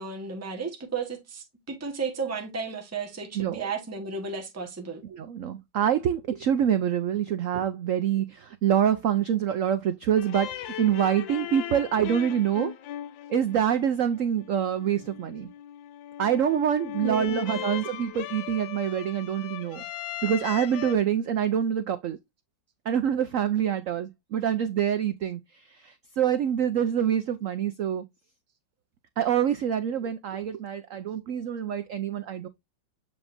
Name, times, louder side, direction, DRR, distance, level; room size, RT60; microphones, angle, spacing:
voice 1, 0.0-5.0 17.0-17.7, right 5 dB, 10° right, 1.0 m, -34 dB
voice 2, 5.1-12.7 13.3-15.5 16.2-19.9 20.2-22.2 22.9-25.4 26.2-28.0 29.2-32.5, right 9 dB, 85° right, 0.7 m, -26 dB
sound 1, 10.2-20.9, left 11 dB, 85° left, 1.4 m, -38 dB
7.1 x 5.1 x 2.6 m
omnidirectional pair, 2.0 m